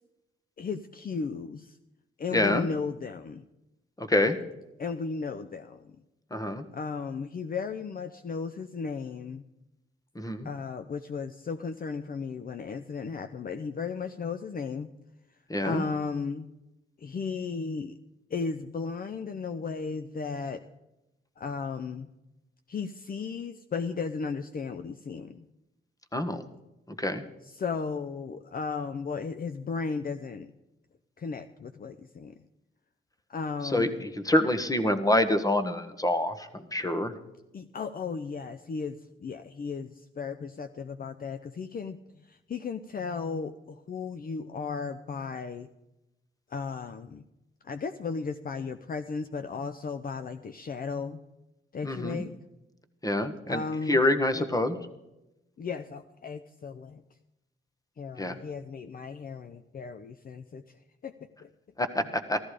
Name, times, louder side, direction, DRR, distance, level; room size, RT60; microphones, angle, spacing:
voice 1, 0.6-1.8 2.2-3.5 4.8-5.9 6.7-9.4 10.4-14.9 15.6-16.5 17.0-18.0 18.3-20.6 21.4-22.1 22.7-25.4 27.4-30.5 31.2-32.3 33.3-34.1 37.5-45.7 46.5-47.2 47.6-51.2 51.7-52.3 53.5-54.0 54.3-54.4 55.6-57.0 58.0-60.6 61.0-61.1 61.4-61.5, left 5 dB, 45° left, 9 dB, 0.7 m, -35 dB
voice 2, 2.3-2.7 4.0-4.4 6.3-6.6 10.1-10.5 15.5-15.8 26.1-26.4 26.9-27.2 33.7-33.9 34.2-37.1 51.8-52.2 53.0-53.6 53.9-54.8 58.2-58.4 61.8-62.4, left 1 dB, 15° left, 10 dB, 1.4 m, -26 dB
14.0 x 13.5 x 5.0 m, 0.95 s
cardioid pair, 65°, 21 cm